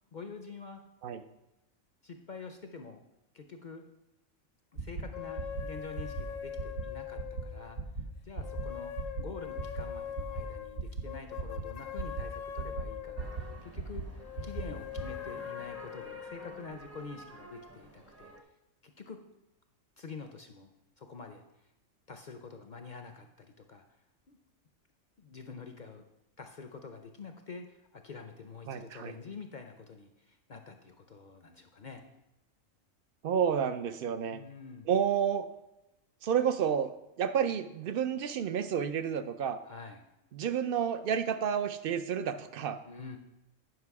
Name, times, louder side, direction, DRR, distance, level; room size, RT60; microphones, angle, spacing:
voice 1, 0.1-0.8 2.0-3.0 3.3-3.9 4.7-7.8 8.2-8.9 9.2-18.3 18.8-19.2 20.0-21.4 22.1-23.8 24.3-24.4 25.2-26.0 26.4-32.0 34.2-34.9 39.6-40.1 42.8-43.2, left 4 dB, 50° left, 5 dB, 0.6 m, -47 dB
sound 1, 4.7-5.0 5.3-5.6 6.0-6.2 6.5-6.8 7.1-7.4 7.7-8.0 8.3-8.6 8.9-9.2 9.5-9.8 10.1-10.4 10.7-11.0 11.3-11.6 12.0-12.2 12.6-12.8 13.1-13.4 13.7-14.0 14.3-14.6 14.9-15.0, right 4 dB, 80° right, 1.5 m, -36 dB
sound 2, 5.1-7.9 8.4-13.6 14.2-16.7, left 10 dB, 75° left, 1.0 m, -42 dB
sound 3, 13.2-18.4, right 2 dB, 15° right, 0.6 m, -51 dB
voice 2, 28.7-29.1 33.2-34.4 34.9-35.5 36.2-39.6 40.3-42.8, right 8 dB, 60° right, 10 dB, 0.6 m, -30 dB
9.6 x 6.0 x 4.7 m, 0.94 s
omnidirectional pair, 1.4 m